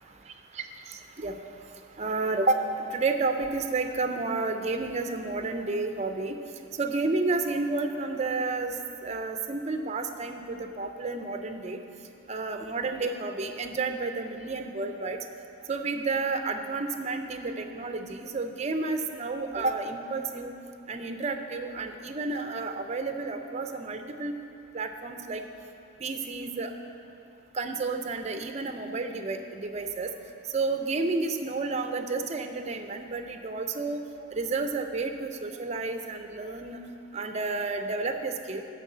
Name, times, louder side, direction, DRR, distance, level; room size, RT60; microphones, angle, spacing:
voice 1, 0.3-1.4 2.0-6.4 6.7-8.8 9.0-11.8 12.3-15.2 15.7-20.5 20.9-24.4 24.7-25.4 26.0-26.7 27.5-30.1 30.5-34.0 34.3-36.8 37.1-38.6, right 3 dB, 30° right, 6 dB, 0.4 m, -31 dB
11.0 x 4.0 x 7.3 m, 2.7 s
head